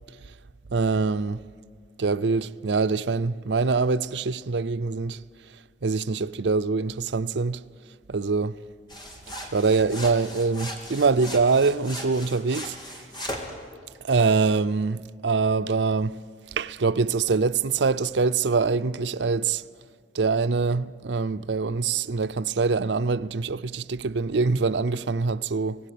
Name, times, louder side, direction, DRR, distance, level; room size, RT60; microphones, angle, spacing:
voice 1, 0.7-1.4 2.0-5.2 5.8-7.6 8.1-8.5 9.5-12.8 14.0-16.1 16.6-19.6 20.1-25.8, right 4 dB, 90° right, 0.6 m, -24 dB
sound 1, 8.9-13.6, equal, 25° left, 3.2 m, -38 dB
25.5 x 19.0 x 8.5 m
head